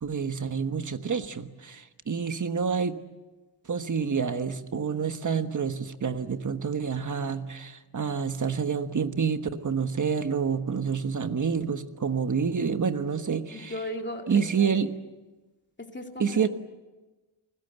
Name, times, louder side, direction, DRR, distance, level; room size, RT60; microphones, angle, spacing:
voice 1, 0.0-3.0 3.7-13.7 14.3-14.9 16.2-16.5, right 6 dB, 35° right, 9 dB, 1.3 m, -28 dB
voice 2, 13.5-14.7 15.9-16.5, left 1 dB, 20° left, 3 dB, 2.7 m, -36 dB
30.0 x 20.5 x 8.1 m, 1.2 s
wide cardioid pair, 150°, 49 cm